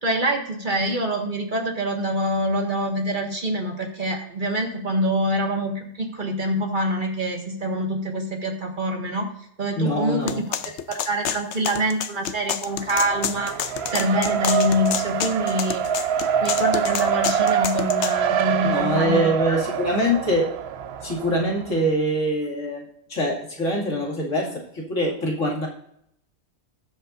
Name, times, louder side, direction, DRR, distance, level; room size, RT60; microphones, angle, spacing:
voice 1, 0.0-9.3 9.6-15.8 16.4-19.6, right 1 dB, 40° right, 1 dB, 1.9 m, -25 dB
voice 2, 9.8-10.4 18.6-20.5 21.0-22.8 23.1-25.7, equal, 85° left, -2 dB, 2.8 m, -24 dB
sound 1, 10.3-18.2, left 10 dB, 70° left, 0.9 m, -29 dB
Race car auto racing, 12.7-21.8, right 7 dB, 65° right, 0.8 m, -25 dB
19.0 x 7.8 x 2.6 m, 0.73 s
omnidirectional pair, 1.3 m